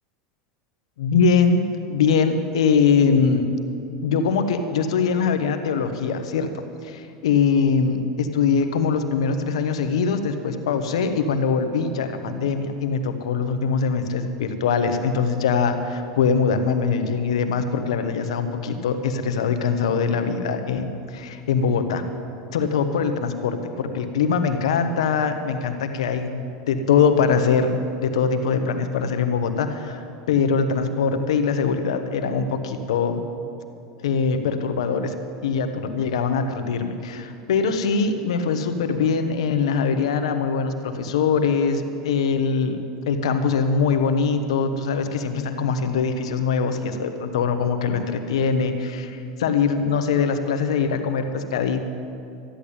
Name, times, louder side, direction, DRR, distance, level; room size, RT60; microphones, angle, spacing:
voice 1, 1.0-1.6 1.9-3.5 4.0-6.5 6.8-22.0 22.5-33.2 34.0-35.2 35.4-51.9, left 5 dB, 85° left, 8 dB, 1.3 m, -22 dB
13.0 x 10.5 x 8.6 m, 2.6 s
supercardioid pair, 110°, 3 cm